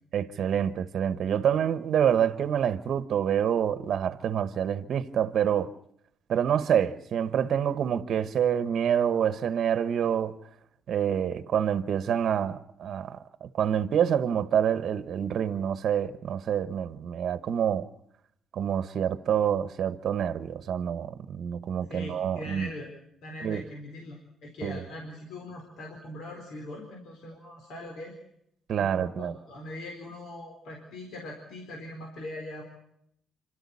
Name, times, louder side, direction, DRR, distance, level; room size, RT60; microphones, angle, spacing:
voice 1, 0.1-5.7 6.3-10.4 10.9-17.9 18.5-22.7 23.4-23.6 24.6-24.8 28.7-29.3, right 9 dB, 65° right, 1.0 m, -27 dB
voice 2, 21.9-22.9 23.2-28.2 28.7-32.6, left 1 dB, 80° left, 4.3 m, -41 dB
27.0 x 13.0 x 8.4 m
cardioid pair, 90°, 0 cm